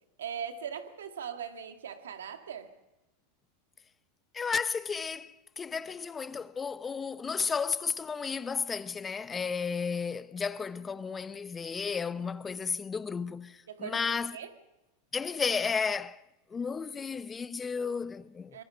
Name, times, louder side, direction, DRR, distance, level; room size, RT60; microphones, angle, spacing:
voice 1, 0.2-2.7 13.7-14.0 14.3-14.5 18.5-18.6, right 8 dB, 85° right, 1.9 m, -39 dB
voice 2, 4.3-14.4 15.1-16.2 16.5-18.6, left 5 dB, 20° left, 0.7 m, -33 dB
24.0 x 21.5 x 5.4 m
hypercardioid pair, 100°, 0 cm